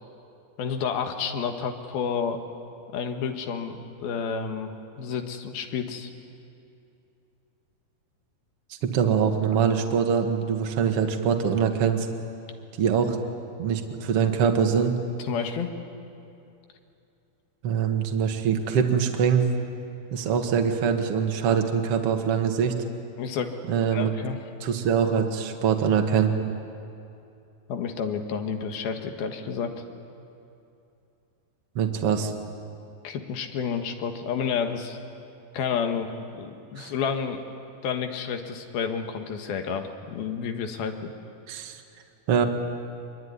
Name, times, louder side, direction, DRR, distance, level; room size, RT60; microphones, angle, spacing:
voice 1, 0.6-2.4 2.9-6.1 15.2-15.7 23.2-23.5 23.7-24.4 27.7-29.7 33.0-35.0 35.5-37.4 37.8-41.1, left 6 dB, 75° left, 5 dB, 3.4 m, -30 dB
voice 2, 8.8-12.1 12.8-13.2 13.6-15.0 17.6-19.5 20.1-22.8 23.7-24.1 24.6-26.3 31.8-32.3 36.8-36.9 41.5-41.8 42.3-42.5, right 7 dB, 45° right, 4 dB, 2.2 m, -23 dB
25.5 x 23.0 x 9.7 m, 2.7 s
omnidirectional pair, 4.4 m